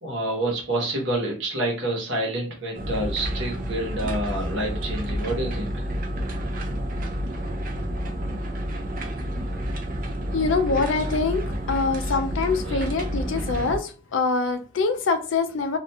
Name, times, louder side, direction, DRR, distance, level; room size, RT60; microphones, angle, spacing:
voice 1, 0.0-5.9 12.6-12.8, right 1 dB, 65° right, -1 dB, 1.0 m, -28 dB
sound 1, 2.7-13.8, equal, 45° right, 0.3 m, -29 dB
voice 2, 10.3-15.8, left 4 dB, 75° left, 7 dB, 0.4 m, -24 dB
2.4 x 2.2 x 2.7 m, 0.35 s
head